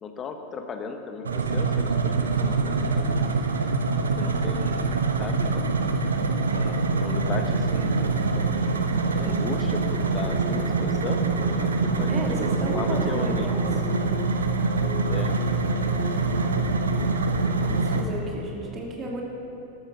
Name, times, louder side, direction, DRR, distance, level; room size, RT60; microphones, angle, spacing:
voice 1, 0.0-3.4 3.9-5.6 6.4-8.3 8.7-8.9 9.2-11.2 11.6-12.2 12.7-13.5 15.1-15.4, left 4 dB, 25° left, 5 dB, 1.3 m, -36 dB
sound 1, 1.2-18.0, right 4 dB, 70° right, 1.0 m, -25 dB
sound 2, 8.3-17.6, left 2 dB, 10° left, 1.3 m, -40 dB
voice 2, 12.1-13.7 13.9-14.1 17.6-19.2, right 2 dB, 25° right, -1 dB, 2.8 m, -33 dB
13.0 x 12.5 x 5.5 m, 2.9 s
figure-of-eight pair, 90°, 0 cm